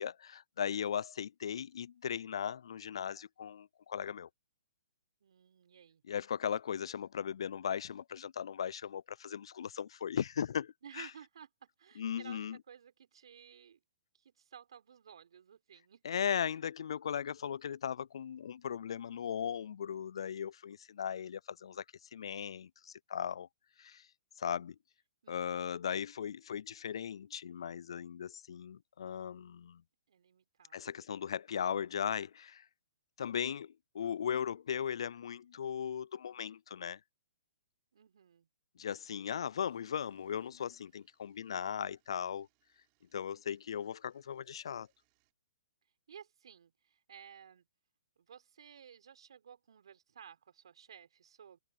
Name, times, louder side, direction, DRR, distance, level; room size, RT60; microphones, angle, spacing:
voice 1, 0.0-4.3 6.1-11.1 12.0-12.6 16.0-21.8 22.1-23.5 23.8-24.1 24.4-24.8 25.3-29.8 30.7-32.7 33.2-37.0 38.8-42.5 43.1-44.9, left 8 dB, 70° left, 0.4 m, -37 dB
voice 2, 5.2-6.0 10.8-13.8 14.1-16.2 25.2-25.7 30.1-30.9 37.9-38.5 46.1-47.7 48.2-51.6, right 8 dB, 70° right, 4.7 m, -55 dB
sound 1, 39.6-45.3, right 35 dB, 35° right, 6.9 m, -79 dB
open air
hypercardioid pair, 140°, 3 cm